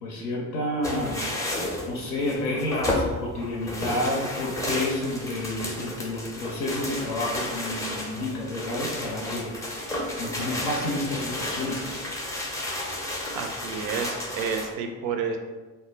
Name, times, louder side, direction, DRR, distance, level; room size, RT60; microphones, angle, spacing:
voice 1, 0.0-1.3 1.9-9.8 10.1-12.0, left 1 dB, 75° left, -2 dB, 0.6 m, -30 dB
sound 1, 0.8-14.7, left 1 dB, 5° left, 0.5 m, -32 dB
voice 2, 13.4-15.4, right 6 dB, 55° right, 4 dB, 0.5 m, -30 dB
2.1 x 2.1 x 3.2 m, 1.3 s
figure-of-eight pair, 50°, 45 cm